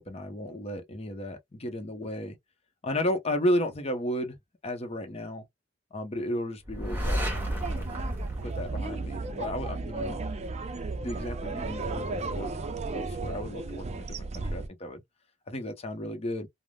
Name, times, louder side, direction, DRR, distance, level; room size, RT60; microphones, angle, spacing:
voice 1, 0.0-2.4 2.8-4.3 4.6-5.4 5.9-7.2 7.7-7.9 8.4-10.2 10.7-12.5 12.9-15.0 15.5-16.5, left 1 dB, 35° left, 0.7 m, -33 dB
sound 1, 6.6-9.5, equal, 10° right, 1.2 m, -32 dB
sound 2, 7.3-14.7, right 3 dB, 35° right, 0.4 m, -34 dB
3.4 x 2.0 x 2.2 m
head